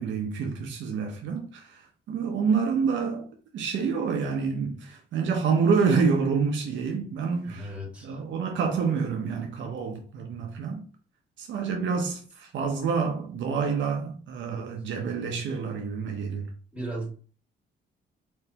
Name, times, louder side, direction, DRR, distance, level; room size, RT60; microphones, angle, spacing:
voice 1, 0.0-1.8 2.1-3.3 3.5-7.7 8.0-10.8 11.4-16.5, right 5 dB, 70° right, 0.9 m, -27 dB
voice 2, 7.4-8.2 16.7-17.1, right 1 dB, 5° right, 2.2 m, -36 dB
4.4 x 3.2 x 2.9 m
cardioid pair, 90°, 20 cm